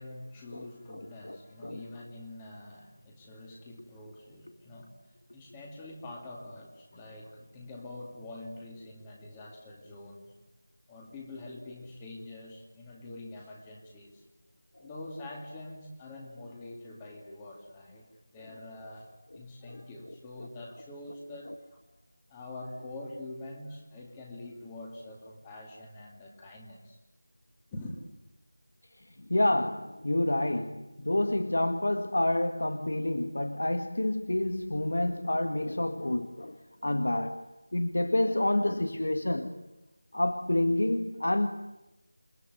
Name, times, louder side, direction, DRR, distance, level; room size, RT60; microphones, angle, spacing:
voice 1, 0.0-4.9 5.3-10.3 10.9-14.2 14.8-22.0 22.3-27.0 27.7-28.0, left 2 dB, 10° left, 0 dB, 2.4 m, -45 dB
voice 2, 0.9-1.4 1.6-1.8 19.7-19.8 29.3-37.4 37.7-39.5 40.1-41.5, left 1 dB, 70° left, 8 dB, 1.9 m, -28 dB
28.5 x 21.5 x 9.4 m, 0.97 s
figure-of-eight pair, 180°, 0 cm